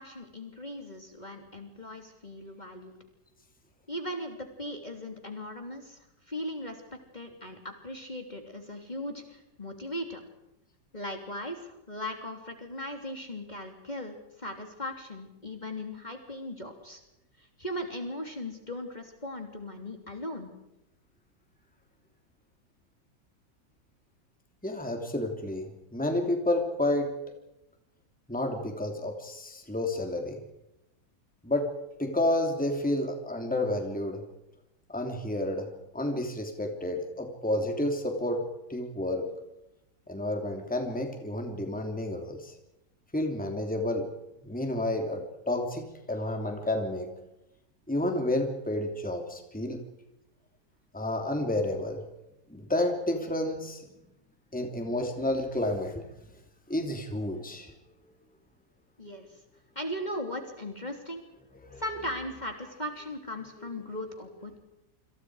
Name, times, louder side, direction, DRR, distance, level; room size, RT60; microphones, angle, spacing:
voice 1, 0.0-2.9 3.9-10.2 10.9-17.0 17.4-20.5 59.0-59.3 59.7-61.2 61.8-64.6, left 1 dB, 25° left, 3 dB, 3.2 m, -38 dB
voice 2, 24.6-27.2 28.3-30.4 31.4-31.7 32.0-34.2 34.9-38.4 38.7-39.3 40.1-42.5 43.1-44.1 44.4-47.1 47.9-49.8 50.9-52.0 52.5-53.9 54.5-56.0 56.7-57.7 61.6-61.8 63.6-63.7, left 1 dB, 5° left, 3 dB, 3.0 m, -30 dB
28.0 x 27.5 x 4.9 m, 0.90 s
omnidirectional pair, 1.9 m